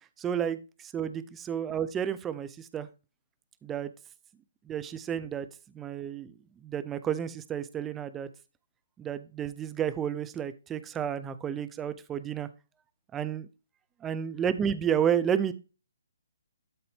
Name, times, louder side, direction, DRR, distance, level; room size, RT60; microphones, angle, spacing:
voice 1, 0.2-2.9 3.6-3.9 4.7-5.5 5.7-6.3 6.6-8.3 9.0-12.5 13.1-13.5 14.0-15.5, right 8 dB, 15° right, 13 dB, 0.6 m, -31 dB
12.0 x 4.1 x 3.5 m, 0.30 s
hypercardioid pair, 145°, 0 cm